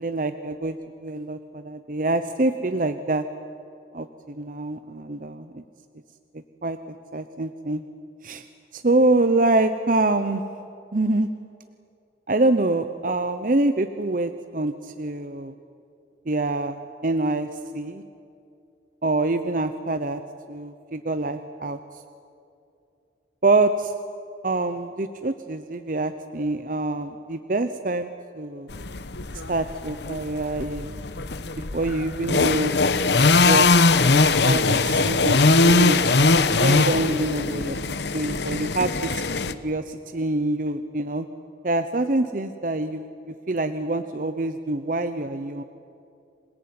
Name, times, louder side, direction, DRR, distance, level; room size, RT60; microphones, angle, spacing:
voice 1, 0.0-3.2 3.9-5.6 6.6-7.8 8.2-8.4 8.7-10.4 10.9-11.3 12.3-15.5 16.3-17.5 17.7-18.0 19.0-20.2 20.5-21.8 23.4-23.9 24.4-28.1 28.3-28.7 29.5-30.9 31.7-32.7 33.4-33.8 34.2-36.0 36.5-37.8 38.1-41.3 41.6-43.1 43.5-45.6, right 2 dB, 45° right, 9 dB, 0.8 m, -25 dB
sound 1, 28.7-39.5, left 3 dB, 70° left, 1.0 m, -21 dB
27.0 x 18.5 x 9.6 m, 2.6 s
head